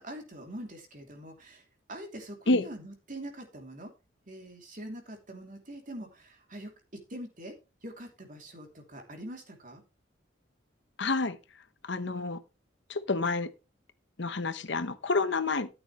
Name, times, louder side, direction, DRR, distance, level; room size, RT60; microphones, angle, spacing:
voice 1, 0.0-1.6 1.9-3.9 4.3-6.7 7.1-7.5 7.8-9.8, right 1 dB, 45° right, 2.9 m, -43 dB
voice 2, 11.0-11.4 11.8-12.4 12.9-13.5 14.2-15.7, left 3 dB, 60° left, 0.9 m, -28 dB
13.5 x 8.9 x 3.1 m
head